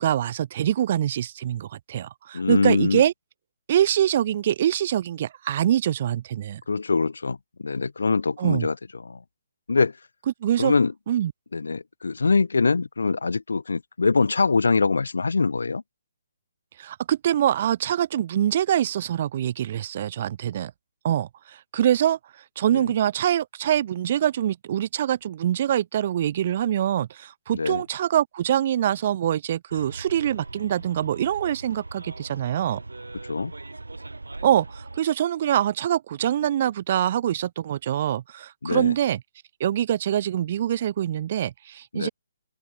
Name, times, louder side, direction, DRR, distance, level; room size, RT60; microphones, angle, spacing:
voice 1, 0.0-3.1 3.7-6.6 8.4-8.7 10.4-10.7 11.1-11.3 16.8-20.7 21.0-22.2 22.6-32.8 34.4-39.2 39.6-42.1, right 11 dB, 40° right, 1.3 m, -24 dB
voice 2, 2.3-3.1 6.7-8.8 9.0-9.2 9.7-9.9 10.6-10.9 11.5-15.8 22.7-22.8 27.5-27.8 33.3-33.5 38.6-38.9 41.9-42.1, left 4 dB, 65° left, 0.6 m, -23 dB
Bus, 29.7-35.0, right 2 dB, 75° right, 3.0 m, -40 dB
open air
figure-of-eight pair, 135°, 0 cm